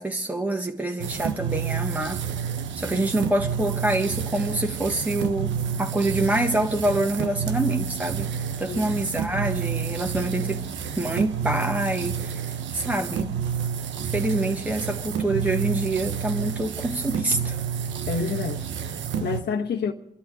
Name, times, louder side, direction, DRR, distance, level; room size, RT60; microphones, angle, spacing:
voice 1, 0.0-2.2 2.8-8.3 8.6-10.6 11.0-12.4 12.7-13.3 14.0-17.6, right 2 dB, 10° right, 1.5 m, -26 dB
sound 1, 1.0-19.4, right 7 dB, 70° right, 1.1 m, -29 dB
voice 2, 8.7-9.1 18.1-19.9, left 5 dB, 55° left, 1.3 m, -29 dB
30.0 x 11.0 x 3.8 m
cardioid pair, 90°, 20 cm